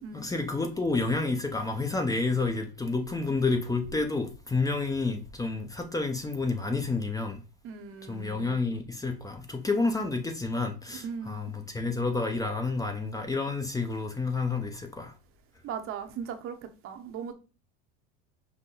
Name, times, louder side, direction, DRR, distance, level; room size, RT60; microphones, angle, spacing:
voice 1, 0.1-7.4 8.1-15.1, left 3 dB, 10° left, 0.7 m, -29 dB
voice 2, 7.6-8.6 11.0-11.5 15.6-17.3, right 6 dB, 45° right, 0.9 m, -38 dB
5.7 x 2.2 x 3.8 m
supercardioid pair, 110°, 29 cm